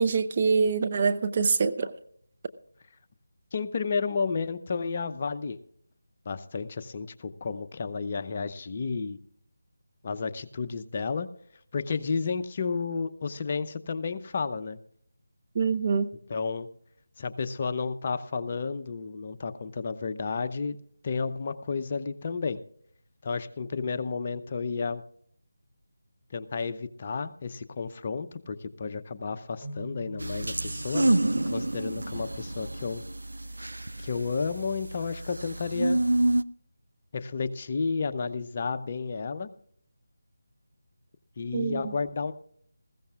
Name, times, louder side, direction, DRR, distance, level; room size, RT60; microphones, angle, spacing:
voice 1, 0.0-1.9 15.5-16.1 41.5-41.9, right 5 dB, 35° right, 8 dB, 0.8 m, -25 dB
voice 2, 3.5-5.6 6.3-9.2 10.0-11.3 11.7-14.8 16.3-16.7 17.2-20.8 21.0-22.6 23.2-25.0 26.3-31.2 31.5-33.0 34.0-36.0 37.1-39.5 41.4-42.3, left 4 dB, 35° left, 9 dB, 0.7 m, -32 dB
sound 1, 29.6-33.1, right 1 dB, 5° left, 2.5 m, -45 dB
sound 2, 30.2-36.4, right 1 dB, 75° right, 0.4 m, -28 dB
19.5 x 15.5 x 2.4 m, 0.62 s
figure-of-eight pair, 160°, 0 cm